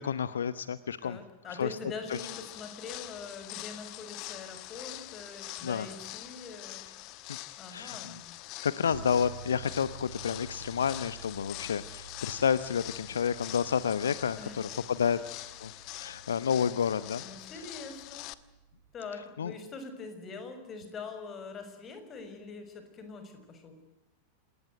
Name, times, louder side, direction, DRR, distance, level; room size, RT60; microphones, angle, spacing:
voice 1, 0.0-1.2 1.4-1.7 2.1-2.2 5.6-5.9 7.3-7.4 7.7-8.1 8.6-15.2 15.6-15.7 16.0-17.2 19.4-19.5, left 7 dB, 70° left, 15 dB, 0.9 m, -30 dB
voice 2, 1.0-6.8 7.6-8.2 14.4-14.6 17.2-18.3 18.9-23.8, left 4 dB, 25° left, 7 dB, 6.2 m, -43 dB
sound 1, 2.0-18.3, left 18 dB, 40° left, 1.2 m, -44 dB
sound 2, 8.9-19.0, right 7 dB, 55° right, 4.0 m, -50 dB
28.0 x 19.5 x 9.3 m, 0.93 s
figure-of-eight pair, 90°, 0 cm